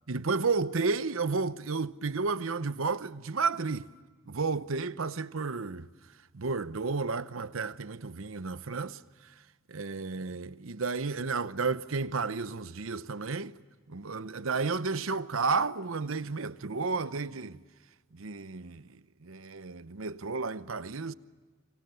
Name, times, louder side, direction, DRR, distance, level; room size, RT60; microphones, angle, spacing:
voice 1, 0.1-3.9 4.3-5.9 6.3-9.0 9.7-13.5 13.9-17.6 18.1-21.1, right 4 dB, 70° right, 0.9 m, -32 dB
29.0 x 26.0 x 6.9 m
head